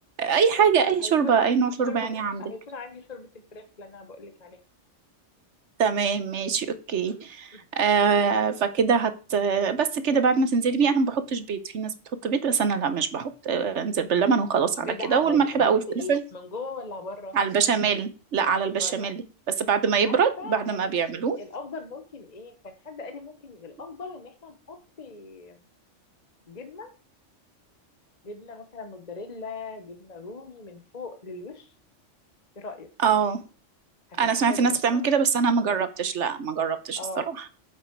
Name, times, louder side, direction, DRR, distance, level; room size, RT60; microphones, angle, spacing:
voice 1, 0.2-2.4 5.8-11.9 12.2-15.8 16.1-16.2 17.3-19.2 19.6-21.4 33.0-33.4 34.2-37.0, right 6 dB, 70° right, 12 dB, 1.3 m, -23 dB
voice 2, 0.8-4.6 7.0-7.3 7.5-7.6 14.8-17.4 18.6-19.1 20.0-25.6 26.5-26.9 28.2-31.7 32.5-32.9 34.2-35.0 37.0-37.3, left 3 dB, 35° left, 7 dB, 1.2 m, -40 dB
9.0 x 7.3 x 4.6 m, 0.36 s
omnidirectional pair, 1.3 m